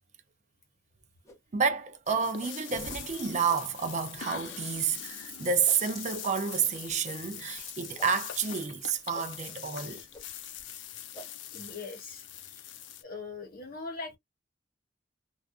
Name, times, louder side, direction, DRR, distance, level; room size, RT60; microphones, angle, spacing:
sound 1, 1.2-1.4 2.4-2.5 3.5-3.6 4.5-4.6 5.6-5.8 7.0-7.2 8.0-8.1 9.1-9.3 10.1-10.2 11.1-11.3, equal, 15° left, 0.6 m, -48 dB
voice 1, 1.5-10.0, right 6 dB, 40° right, 0.4 m, -30 dB
sound 2, 2.1-13.0, left 10 dB, 80° left, 0.5 m, -43 dB
Rain, 2.7-10.8, equal, ahead, 1.4 m, -49 dB
voice 2, 11.5-12.7 13.0-14.2, left 3 dB, 50° left, 1.0 m, -41 dB
2.5 x 2.3 x 2.3 m
head